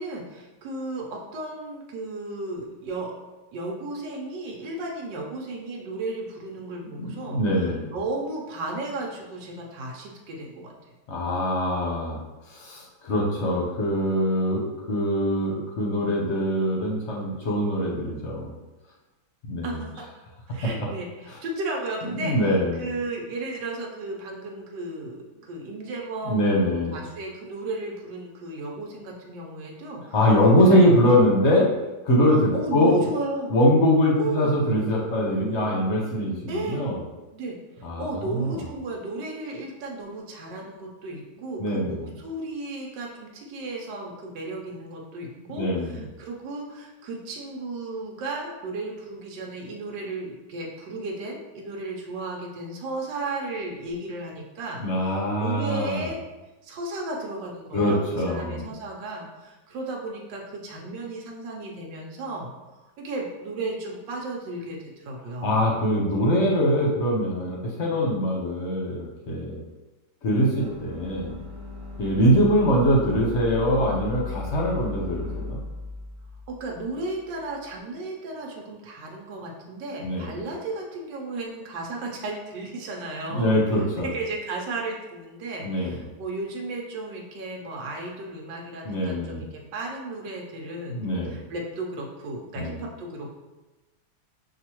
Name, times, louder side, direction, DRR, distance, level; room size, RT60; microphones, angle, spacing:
voice 1, 0.0-3.1 3.5-7.4 7.9-10.7 19.6-20.1 20.5-30.2 30.5-31.2 32.5-33.5 34.2-34.6 36.5-37.0 37.3-56.2 56.6-65.7 67.9-68.1 72.3-72.5 76.5-83.6 84.0-93.3, right 2 dB, 90° right, -1 dB, 1.3 m, -34 dB
voice 2, 7.0-7.9 11.1-12.2 12.5-18.5 19.5-19.8 20.6-20.7 22.2-22.8 26.3-26.9 30.1-31.7 32.0-33.0 33.5-37.0 37.8-38.1 38.3-38.6 41.6-42.1 45.6-46.0 54.8-56.1 57.7-58.7 65.4-69.6 70.2-71.3 72.0-75.6 80.0-80.3 83.3-84.1 85.6-86.0 88.8-89.4 90.9-91.3 92.6-92.8, equal, 50° left, -2 dB, 0.9 m, -23 dB
sound 1, 70.6-77.7, left 3 dB, 65° right, 1.4 m, -37 dB
5.9 x 2.7 x 2.9 m, 1.1 s
omnidirectional pair, 1.9 m